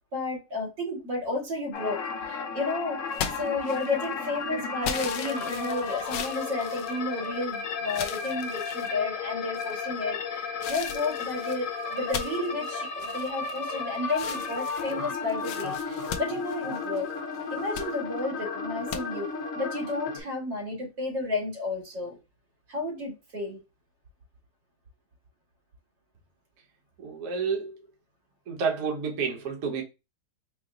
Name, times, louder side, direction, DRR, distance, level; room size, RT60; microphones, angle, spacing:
voice 1, 0.1-3.0 3.4-17.1 17.5-22.2 22.7-23.6, left 2 dB, 85° right, 2.6 m, -32 dB
sound 1, 1.7-20.2, left 5 dB, 55° left, 0.9 m, -34 dB
sound 2, 3.1-4.1 4.8-7.5 7.9-8.9 9.5-10.0 10.6-13.8 14.1-17.1 17.5-17.9 18.9-19.0, left 8 dB, 80° left, 1.3 m, -38 dB
voice 2, 27.0-27.8 28.5-29.8, right 5 dB, 50° right, 1.1 m, -29 dB
4.8 x 2.0 x 3.7 m
omnidirectional pair, 2.0 m